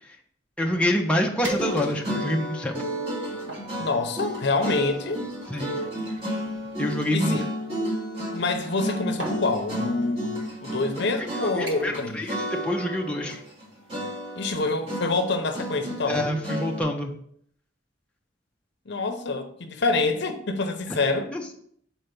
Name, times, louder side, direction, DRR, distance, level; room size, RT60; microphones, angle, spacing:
voice 1, 0.6-2.8 5.5-5.7 6.8-7.4 11.4-13.4 16.0-17.1 21.3-21.5, left 1 dB, 5° left, 0.6 m, -27 dB
sound 1, 0.8-0.9 1.4-2.2 2.8-3.7 4.6-7.5 8.6-8.9 9.2-9.5 10.4-10.5 11.0-11.2 11.7-12.1 12.4-12.7 13.1-13.2, right 1 dB, 80° right, 1.4 m, -39 dB
sound 2, 1.6-12.0 12.3-13.6 13.9-16.8, equal, 30° right, 2.2 m, -32 dB
voice 2, 3.8-5.2 7.1-7.4 8.3-12.3 14.4-16.2 18.9-21.3, left 3 dB, 60° left, 0.7 m, -26 dB
4.5 x 4.4 x 5.2 m
head